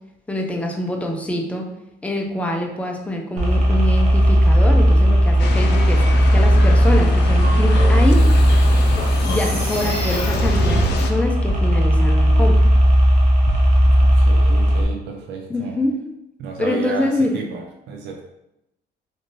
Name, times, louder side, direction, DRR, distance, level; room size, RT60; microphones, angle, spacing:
voice 1, 0.3-1.6 2.0-6.0 6.3-8.2 9.2-12.7 15.5-16.0 16.6-17.4, left 1 dB, 5° left, 1 dB, 0.4 m, -25 dB
sound 1, 3.4-14.8, equal, 40° right, 0.7 m, -16 dB
sound 2, 5.4-11.1, left 5 dB, 70° left, 0.4 m, -28 dB
sound 3, 7.2-11.0, right 1 dB, 25° left, 1.3 m, -27 dB
voice 2, 13.8-15.7 16.4-18.2, right 4 dB, 80° right, 1 dB, 0.5 m, -32 dB
3.1 x 2.6 x 2.6 m, 0.88 s
cardioid pair, 140°, 18 cm